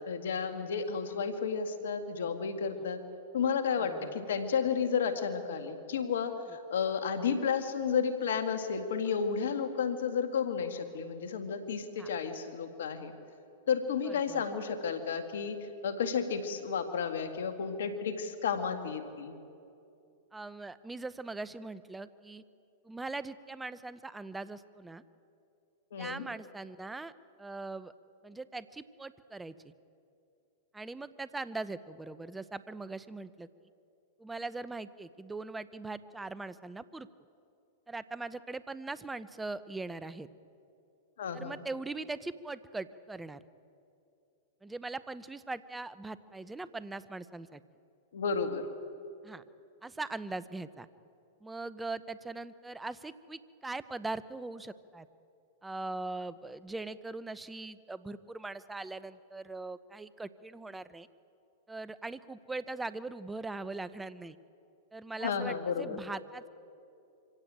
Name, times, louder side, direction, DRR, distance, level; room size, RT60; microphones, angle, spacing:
voice 1, 0.0-3.0 3.3-13.1 13.7-19.4 25.9-26.3 41.2-41.6 48.1-48.7 65.2-66.0, left 6 dB, 75° left, 8 dB, 1.9 m, -32 dB
voice 2, 14.0-14.4 20.3-22.4 22.8-25.0 26.0-27.1 27.4-27.9 28.2-29.5 30.7-33.5 34.2-37.1 37.9-40.3 41.3-43.4 44.6-47.6 49.2-49.4 49.8-50.9 51.4-55.1 55.6-61.1 61.7-64.4 64.9-66.5, right 3 dB, 10° right, 15 dB, 0.8 m, -41 dB
25.0 x 16.5 x 8.9 m, 2.6 s
hypercardioid pair, 115°, 0 cm